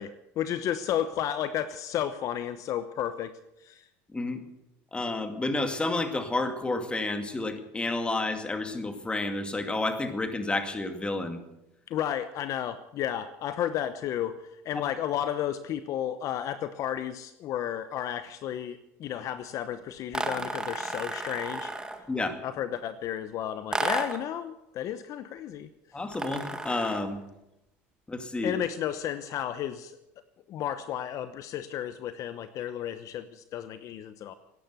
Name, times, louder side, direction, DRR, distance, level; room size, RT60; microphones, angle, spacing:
voice 1, 0.0-3.3 3.6-3.9 11.9-21.7 22.4-25.7 28.4-30.0 30.5-34.3, left 10 dB, 55° left, 12 dB, 0.9 m, -32 dB
voice 2, 4.9-11.4 22.1-22.4 25.9-27.2 28.1-28.5, left 2 dB, 15° left, 7 dB, 2.3 m, -30 dB
sound 1, 20.1-22.1 23.7-24.3 26.1-27.1, right 2 dB, 10° right, 1.8 m, -33 dB
17.5 x 10.0 x 8.2 m, 0.90 s
supercardioid pair, 105°, 7 cm